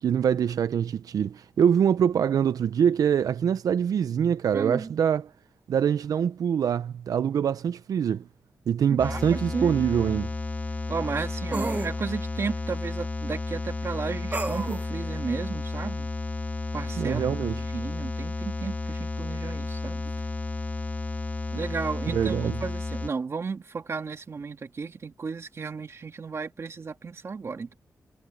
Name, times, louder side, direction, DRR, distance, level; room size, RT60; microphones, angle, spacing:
voice 1, 0.0-5.2 5.7-8.2 8.7-10.3 17.0-17.6 22.1-22.6, right 8 dB, 85° right, 0.4 m, -24 dB
voice 2, 4.5-4.9 9.0-9.7 10.9-16.1 16.7-17.2 17.7-20.0 21.5-27.7, right 5 dB, 45° right, 1.9 m, -33 dB
sound 1, 9.0-23.1, left 3 dB, 25° left, 1.4 m, -32 dB
sound 2, 9.2-9.3 11.5-11.9 14.3-14.8, right 3 dB, 25° right, 1.1 m, -30 dB
wide cardioid pair, 120°, 6 cm